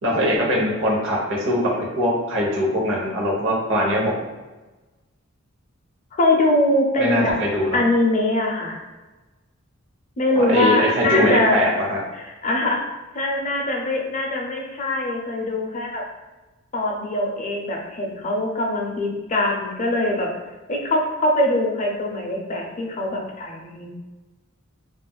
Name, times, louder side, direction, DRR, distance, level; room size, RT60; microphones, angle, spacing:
voice 1, 0.0-4.2 7.0-7.8 10.4-12.0, equal, 65° right, -2 dB, 0.8 m, -21 dB
voice 2, 6.2-7.4 7.7-8.8 10.2-11.6 12.1-12.8 13.1-16.0 16.7-20.3 20.7-23.9, left 1 dB, 35° left, 1 dB, 0.4 m, -22 dB
2.4 x 2.1 x 3.8 m, 1.2 s
head